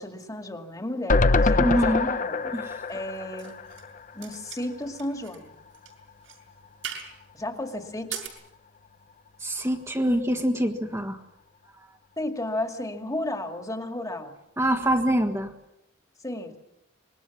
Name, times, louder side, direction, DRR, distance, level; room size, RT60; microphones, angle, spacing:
voice 1, 0.0-2.4 2.9-3.6 4.1-5.5 7.3-8.2 12.2-14.3 16.2-16.6, left 1 dB, 20° left, 5 dB, 2.2 m, -33 dB
sound 1, 1.1-4.3 4.7-4.8 5.0-5.1, left 3 dB, 45° left, 0.8 m, -24 dB
voice 2, 1.6-2.1 2.5-2.7 9.4-11.2 14.6-15.5, equal, 15° right, 3 dB, 1.5 m, -25 dB
sound 2, 2.8-3.9 4.2-5.4 5.7-5.9 6.2-6.4 6.8-7.1 7.9-8.3, right 8 dB, 85° right, 6.1 m, -39 dB
25.5 x 21.5 x 7.2 m, 0.88 s
head